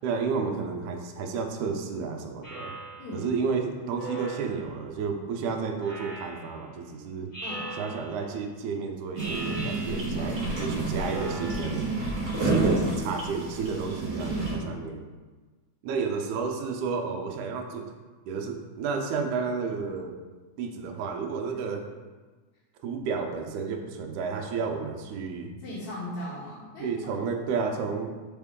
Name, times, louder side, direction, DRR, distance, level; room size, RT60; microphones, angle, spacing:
voice 1, 0.0-2.7 3.1-7.3 7.8-11.9 12.4-15.0 15.8-17.9 18.3-20.2 20.6-21.9 22.8-25.6 26.8-28.2, right 5 dB, 80° right, 3 dB, 2.1 m, -31 dB
Speech synthesizer, 2.4-3.2 4.0-4.8 5.8-6.6 7.3-8.3 9.1-10.4 10.9-12.0, right 2 dB, 45° left, 2.3 m, -39 dB
voice 2, 3.0-3.3 7.4-7.8 10.1-11.1 14.2-14.7 21.5-21.8 25.6-27.2, left 1 dB, 70° left, -10 dB, 2.5 m, -39 dB
sound 1, 9.2-14.6, right 2 dB, 50° right, 1.2 m, -29 dB
5.9 x 4.5 x 3.6 m, 1.3 s
omnidirectional pair, 3.6 m